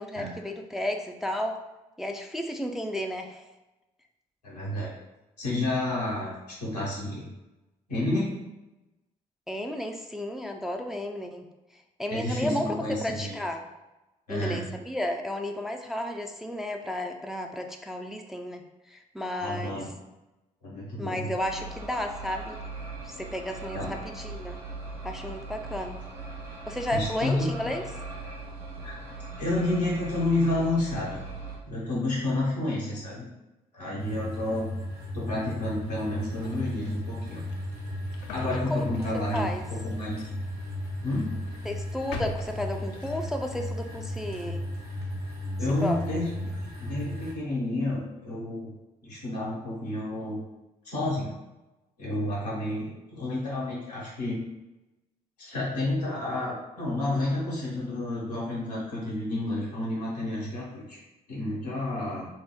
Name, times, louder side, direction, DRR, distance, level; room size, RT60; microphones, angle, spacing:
voice 1, 0.0-1.6 2.0-3.4 9.5-11.5 12.0-12.8 13.0-13.6 14.3-19.8 21.0-22.6 23.0-24.6 25.0-26.0 26.7-27.9 38.7-38.9 39.1-39.7 41.7-44.6 45.7-46.0, left 1 dB, ahead, 3 dB, 0.3 m, -33 dB
voice 2, 4.4-5.0 5.4-7.3 7.9-8.3 12.1-13.4 14.3-14.7 19.4-19.8 20.6-21.3 23.7-24.0 26.9-27.7 28.8-28.9 29.4-31.3 31.6-33.3 33.7-34.7 35.1-37.4 38.3-40.2 41.0-41.3 45.6-46.3 46.6-48.7 49.0-50.4 50.8-51.3 52.0-54.4 55.4-61.0 61.3-62.3, left 1 dB, 90° left, -7 dB, 0.9 m, -30 dB
sound 1, 21.4-31.6, right 3 dB, 85° right, 0.8 m, -40 dB
sound 2, 34.0-47.3, left 1 dB, 55° right, 0.7 m, -35 dB
sound 3, 36.0-43.5, left 4 dB, 70° left, 0.4 m, -46 dB
2.8 x 2.0 x 3.5 m, 1.0 s
figure-of-eight pair, 45°, 20 cm